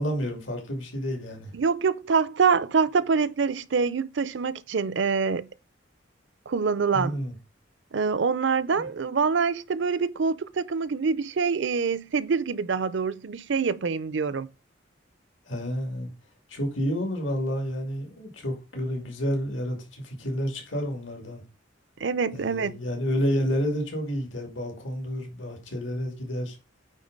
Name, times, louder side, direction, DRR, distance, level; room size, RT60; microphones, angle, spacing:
voice 1, 0.0-1.5 6.9-7.3 8.7-8.9 15.5-16.1 16.5-21.4 22.3-26.6, equal, 85° left, 2.5 m, -30 dB
voice 2, 1.5-5.5 6.5-7.2 7.9-14.5 22.0-22.7, right 5 dB, 70° right, 0.5 m, -25 dB
9.1 x 3.8 x 5.2 m
head